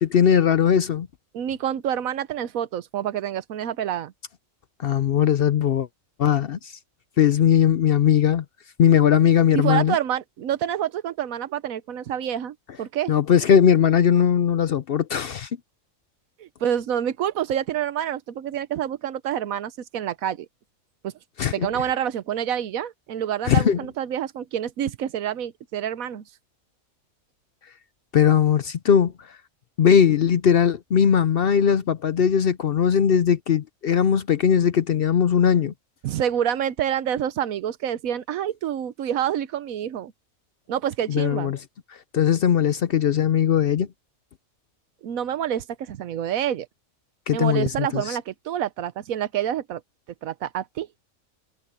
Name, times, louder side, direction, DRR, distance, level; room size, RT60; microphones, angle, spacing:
voice 1, 0.0-1.1 4.8-5.9 6.2-6.8 7.2-8.4 8.8-10.0 13.1-15.5 21.4-21.7 23.5-23.8 28.1-29.1 29.8-35.7 41.1-41.6 42.1-43.9 47.3-48.2, left 8 dB, 55° left, 0.7 m, -19 dB
voice 2, 1.3-4.1 9.5-13.1 16.4-20.5 21.0-21.1 21.5-26.2 36.0-40.1 40.7-41.5 45.0-46.7 47.3-49.8 50.2-50.9, right 10 dB, 85° right, 1.2 m, -27 dB
omnidirectional pair, 1.4 m